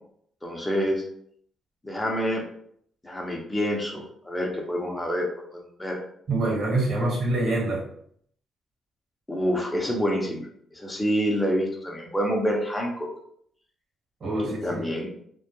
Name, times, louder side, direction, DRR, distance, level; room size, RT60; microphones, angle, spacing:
voice 1, 0.4-1.0 1.8-2.4 3.0-5.3 5.5-6.0 7.0-7.1 9.3-13.1 14.4-15.1, equal, 15° left, 0 dB, 0.6 m, -27 dB
voice 2, 6.3-7.8 14.2-14.8, right 2 dB, 55° right, -3 dB, 1.1 m, -25 dB
2.2 x 2.1 x 2.9 m, 0.66 s
cardioid pair, 90°, 0 cm